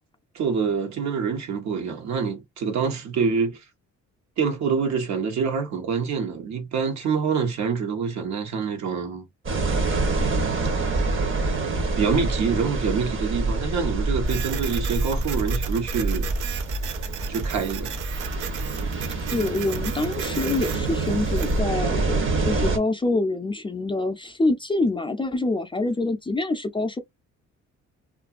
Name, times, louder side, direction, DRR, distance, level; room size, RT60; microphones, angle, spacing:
voice 1, 0.3-3.6 4.4-9.3 12.0-16.3 17.3-17.9, right 6 dB, 65° right, 1.0 m, -26 dB
sound 1, 9.5-22.8, right 3 dB, 40° right, 0.9 m, -26 dB
Printer, 14.2-21.6, right 10 dB, 85° right, 0.6 m, -36 dB
voice 2, 19.3-27.0, left 2 dB, 15° left, 0.4 m, -26 dB
2.7 x 2.5 x 2.3 m
cardioid pair, 90°, 30 cm